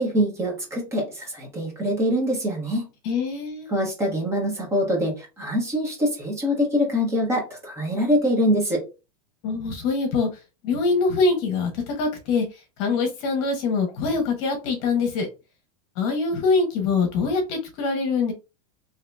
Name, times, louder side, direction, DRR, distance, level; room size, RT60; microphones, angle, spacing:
voice 1, 0.0-2.9 3.7-8.8, equal, 15° right, 1.1 m, -24 dB
voice 2, 3.0-3.7 9.4-10.3 10.6-12.4 12.8-15.3 16.0-18.3, left 4 dB, 45° left, 1.0 m, -24 dB
2.9 x 2.8 x 3.4 m
supercardioid pair, 160°, 19 cm